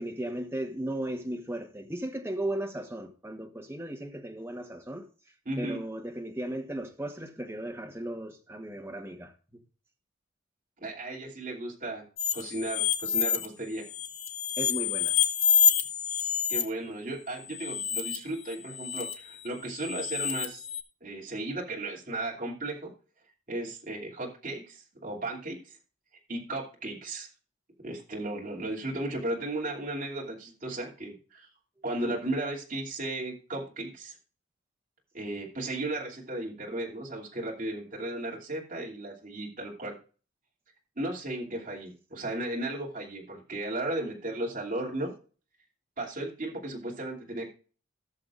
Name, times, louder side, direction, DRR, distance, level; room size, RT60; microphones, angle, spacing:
voice 1, 0.0-5.0 5.6-9.3 14.6-15.2, right 1 dB, 10° right, 1.2 m, -36 dB
voice 2, 5.4-5.8 10.8-12.0 12.3-13.8 16.2-20.6 21.0-22.9 23.5-25.8 26.3-27.3 27.8-31.5 31.8-34.1 35.1-40.0 41.0-45.1 46.0-47.5, right 1 dB, 40° right, 2.8 m, -35 dB
sound 1, 12.2-13.5 13.8-16.6 17.5-18.2 18.5-19.1 19.8-20.8, left 8 dB, 70° left, 1.4 m, -27 dB
17.5 x 6.8 x 2.5 m
head